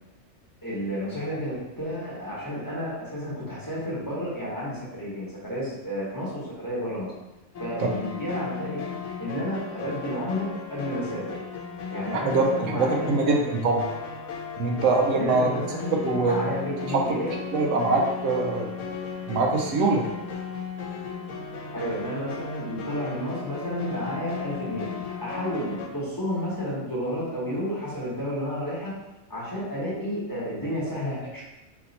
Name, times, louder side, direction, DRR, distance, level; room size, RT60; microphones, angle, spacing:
voice 1, 0.6-7.1 7.6-8.8 9.2-11.4 11.9-13.4 14.7-17.3 21.3-21.4 21.7-28.9 29.3-31.4, equal, 15° left, -8 dB, 1.2 m, -31 dB
sound 1, 7.5-25.9, left 6 dB, 70° left, 1.0 m, -36 dB
voice 2, 12.1-13.9 14.6-15.5 16.0-16.5 16.9-17.0 17.5-18.7 19.3-20.1, right 3 dB, 75° right, 1 dB, 1.0 m, -23 dB
4.2 x 2.8 x 4.0 m, 1.0 s
omnidirectional pair, 1.4 m